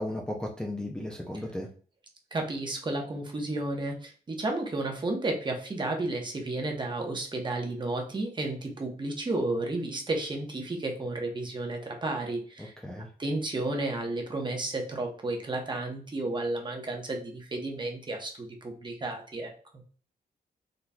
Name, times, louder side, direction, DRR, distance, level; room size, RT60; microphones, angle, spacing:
voice 1, 0.0-1.7 12.6-13.1, left 1 dB, 5° left, -2 dB, 0.4 m, -35 dB
voice 2, 2.3-12.7 13.2-19.5, right 2 dB, 25° right, 2 dB, 0.8 m, -32 dB
3.9 x 3.0 x 2.2 m, 0.42 s
wide cardioid pair, 125°, 17 cm